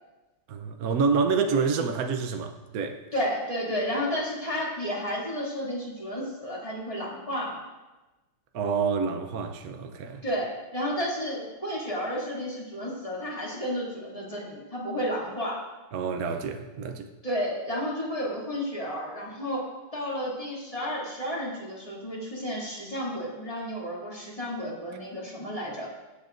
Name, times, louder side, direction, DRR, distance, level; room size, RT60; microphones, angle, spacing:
voice 1, 0.5-3.0 8.5-10.2 15.9-17.1, right 5 dB, 70° right, 0.8 m, -27 dB
voice 2, 3.1-7.6 10.2-15.6 17.2-19.6 19.9-25.9, equal, 15° left, 2.5 m, -32 dB
23.5 x 8.3 x 2.6 m
omnidirectional pair, 2.4 m